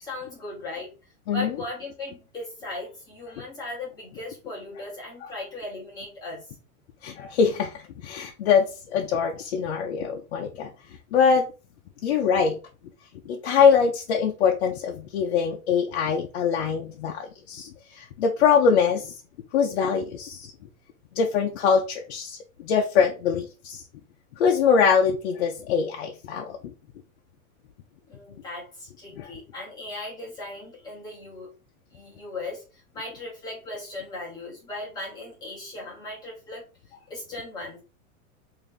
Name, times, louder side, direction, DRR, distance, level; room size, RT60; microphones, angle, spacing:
voice 1, 0.0-0.9 1.3-6.5 28.1-31.5 31.9-36.6 37.1-37.8, left 2 dB, 10° left, 0.8 m, -37 dB
voice 2, 7.0-10.7 11.1-11.5 12.0-12.6 13.3-19.1 19.5-20.5 21.1-23.8 24.4-26.6 29.2-29.3, left 6 dB, 50° left, 0.6 m, -23 dB
3.3 x 2.7 x 3.7 m
supercardioid pair, 175°, 42 cm